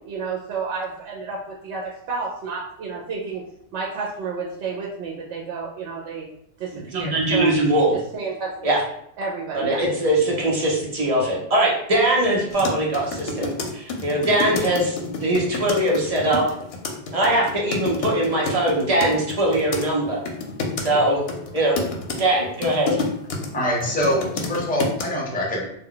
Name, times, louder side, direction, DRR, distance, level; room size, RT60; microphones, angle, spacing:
voice 1, 0.0-3.4 3.7-6.3 6.6-7.5 7.9-8.7 9.2-9.8, right 4 dB, 85° right, -3 dB, 0.9 m, -31 dB
voice 2, 6.9-7.9 8.6-8.8 9.5-16.4 17.1-20.2 20.8-21.2 21.5-21.8 22.2-23.0, right 1 dB, 40° right, -3 dB, 0.7 m, -21 dB
sound 1, 12.5-19.9 20.3-20.9 21.3-23.5 23.8-25.0, left 3 dB, 65° left, 0.7 m, -29 dB
voice 3, 23.5-25.7, equal, 10° left, -3 dB, 0.4 m, -24 dB
2.2 x 2.2 x 3.7 m, 0.71 s
omnidirectional pair, 1.1 m